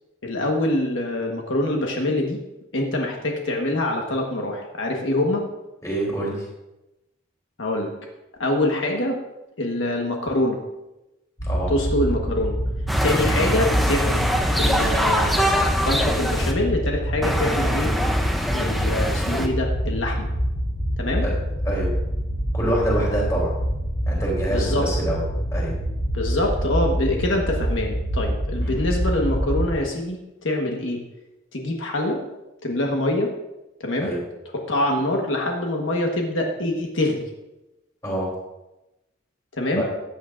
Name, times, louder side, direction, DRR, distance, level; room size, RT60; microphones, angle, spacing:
voice 1, 0.2-2.4 2.7-5.4 7.6-7.9 8.4-9.2 9.6-10.6 11.7-12.6 13.0-17.9 18.5-20.3 21.0-21.3 24.5-24.9 26.1-30.2 30.4-31.0 31.5-32.2 32.6-33.3 33.8-34.1 34.5-37.3 39.6-39.8, left 1 dB, 80° left, 1 dB, 1.4 m, -25 dB
voice 2, 5.8-6.5 11.4-11.7 21.2-21.3 21.6-21.9 22.5-23.5 24.1-25.2 25.5-25.7 28.6-28.7 34.0-34.2 38.0-38.3 39.8-39.9, right 1 dB, 15° left, -4 dB, 3.3 m, -25 dB
sound 1, 11.4-29.7, equal, 50° left, 3.6 m, -26 dB
sound 2, 12.9-16.5 17.2-19.5, equal, ahead, 0.7 m, -23 dB
14.5 x 8.7 x 2.6 m, 0.97 s
head